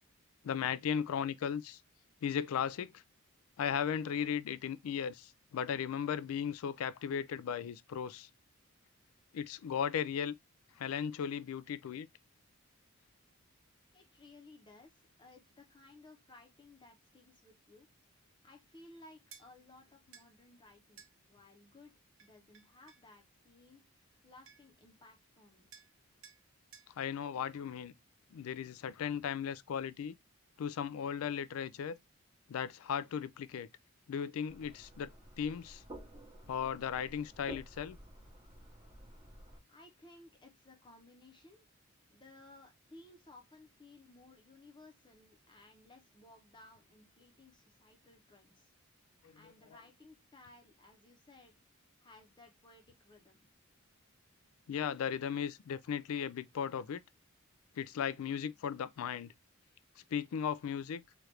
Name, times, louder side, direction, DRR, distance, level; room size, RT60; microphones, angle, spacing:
voice 1, 0.4-1.8 2.2-3.0 3.6-8.3 9.3-10.3 10.8-12.1 27.0-27.9 28.3-30.1 30.6-32.0 32.5-33.7 34.1-35.1 35.4-35.8 36.5-38.0 49.2-49.3 54.7-57.0 57.8-59.3 60.1-61.0, left 8 dB, 75° left, 0.3 m, -36 dB
voice 2, 13.9-17.9 18.4-21.9 22.2-25.7 39.7-41.7 42.1-49.1 49.3-51.5 52.0-53.4, left 2 dB, 20° left, 0.8 m, -59 dB
sound 1, 19.3-19.5 20.1-20.3 21.0-21.1 22.2-23.1 24.1-24.2 24.5-24.8 25.7-25.9 26.2-26.4 26.7-26.9, right 7 dB, 60° right, 0.6 m, -56 dB
sound 2, 34.5-39.6, right 1 dB, 20° right, 0.8 m, -52 dB
3.0 x 2.5 x 3.1 m
head